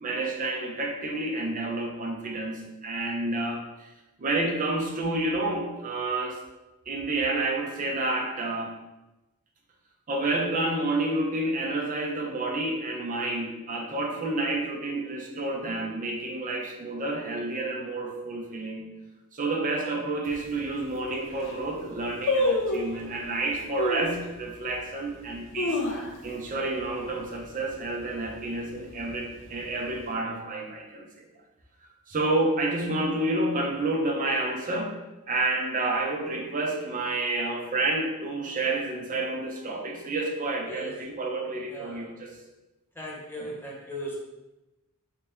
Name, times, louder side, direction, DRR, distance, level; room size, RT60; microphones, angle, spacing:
voice 1, 0.0-3.9 4.2-6.4 6.9-8.7 10.1-18.9 19.3-25.8 26.2-31.3 32.1-35.0 35.3-42.4 43.4-43.5, right 2 dB, 35° right, 0 dB, 0.6 m, -29 dB
sound 1, 20.2-20.3 21.0-21.1 21.3-21.7 22.3-23.0 23.8-24.2 24.7-24.8 25.3-26.4 26.7-26.8 27.2-27.5 27.9-28.3 28.9-29.7 30.0-30.1, left 2 dB, 55° left, 0.6 m, -27 dB
voice 2, 41.7-42.1 43.0-44.2, equal, 10° left, -3 dB, 0.7 m, -38 dB
3.3 x 2.8 x 3.6 m, 1.0 s
head